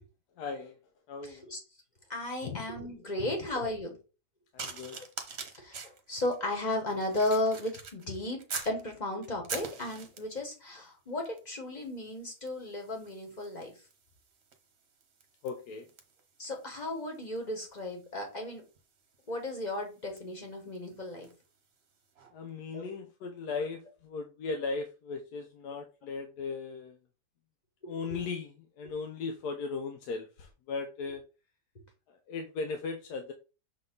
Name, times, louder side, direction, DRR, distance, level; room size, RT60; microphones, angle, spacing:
voice 1, 0.4-0.8 1.1-1.5 2.4-2.6 3.2-3.4 4.5-5.0 15.4-15.9 22.3-27.0 27.8-31.2 32.1-33.3, left 4 dB, 90° left, 5 dB, 1.3 m, -37 dB
voice 2, 1.2-1.6 2.1-4.0 4.9-5.0 5.6-8.4 8.6-13.7 16.4-18.6 19.3-21.3 22.7-22.9 27.8-28.2, left 1 dB, 30° left, 2 dB, 1.7 m, -35 dB
sound 1, 4.6-8.8 9.2-10.5 11.2-11.5 11.8-21.5 22.2-22.3, right 5 dB, 45° right, 1.2 m, -45 dB
6.4 x 3.8 x 3.8 m, 0.32 s
omnidirectional pair, 1.6 m